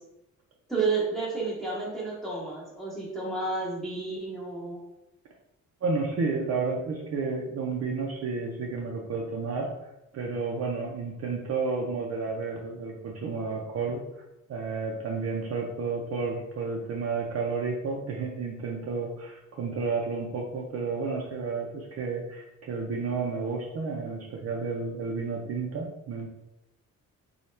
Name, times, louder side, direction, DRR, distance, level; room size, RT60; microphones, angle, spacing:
voice 1, 0.7-4.8, right 3 dB, ahead, -6 dB, 0.9 m, -31 dB
voice 2, 5.8-9.7 10.1-14.0 14.5-26.3, right 4 dB, 50° right, 0 dB, 0.5 m, -31 dB
4.2 x 2.3 x 3.2 m, 0.90 s
cardioid pair, 165°, 33 cm